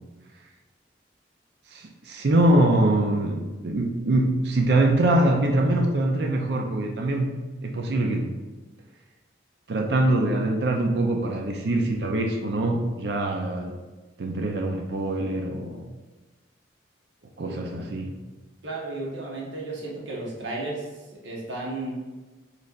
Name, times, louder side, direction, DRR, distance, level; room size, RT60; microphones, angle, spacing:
voice 1, 1.7-7.3 7.6-8.3 9.7-13.8 14.2-15.9 17.4-18.1, right 1 dB, 60° right, 2 dB, 0.5 m, -23 dB
voice 2, 17.4-17.9 18.6-20.9 21.2-22.0, right 2 dB, 85° right, -4 dB, 1.1 m, -33 dB
6.6 x 3.2 x 2.4 m, 1.2 s
head